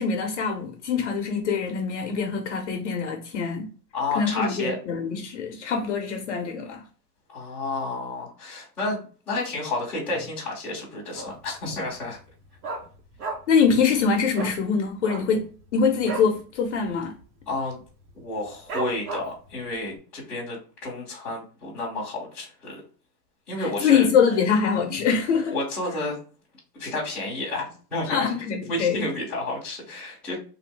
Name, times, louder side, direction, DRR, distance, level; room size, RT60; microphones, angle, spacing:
voice 1, 0.0-3.7 4.1-6.8 13.5-17.1 23.6-25.5 28.1-29.0, left 6 dB, 50° left, 0.6 m, -24 dB
voice 2, 3.9-4.7 7.3-12.2 17.5-17.8 18.1-22.8 23.5-24.1 25.5-26.2 26.7-30.4, left 2 dB, 5° left, 0.5 m, -31 dB
Dog, 11.1-11.6 11.9-12.0 12.2-13.7 13.9-14.1 14.3-14.6 15.0-16.4 16.7-16.9 17.2-17.6 18.0-18.1 18.7-19.5 20.0-20.1, right 3 dB, 65° right, 1.3 m, -34 dB
3.4 x 2.5 x 3.2 m
supercardioid pair, 175°, 48 cm